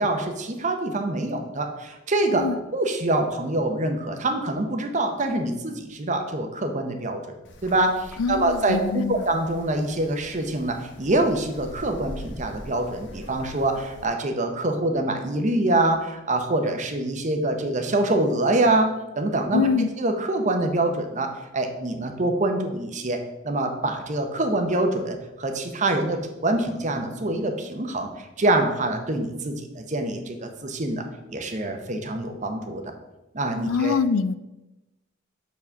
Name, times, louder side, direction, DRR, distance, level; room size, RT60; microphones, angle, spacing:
voice 1, 0.0-2.5 2.7-7.2 7.6-19.7 20.0-23.2 23.4-31.0 31.3-32.8 33.3-33.9, right 2 dB, 35° right, 5 dB, 0.8 m, -25 dB
Wind, 7.4-14.1, left 1 dB, 60° left, 0.9 m, -43 dB
voice 2, 8.2-9.2 19.5-19.9 33.7-34.4, left 5 dB, 80° left, 15 dB, 0.4 m, -24 dB
7.1 x 4.1 x 5.8 m, 1.0 s
head